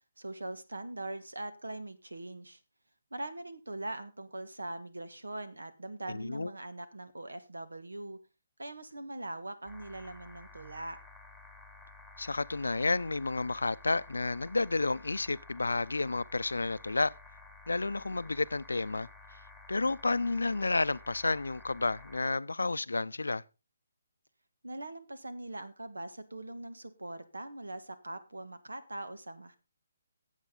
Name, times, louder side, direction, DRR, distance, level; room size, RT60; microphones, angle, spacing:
voice 1, 0.2-2.6 3.1-8.2 8.6-11.0 24.6-29.6, right 2 dB, 90° right, 1.4 m, -42 dB
voice 2, 6.1-6.5 12.2-17.1 17.7-19.1 19.7-23.4, left 3 dB, 85° left, 0.5 m, -31 dB
sound 1, 9.7-22.2, left 3 dB, 5° right, 1.8 m, -53 dB
12.5 x 8.1 x 3.8 m
figure-of-eight pair, 145°, 0 cm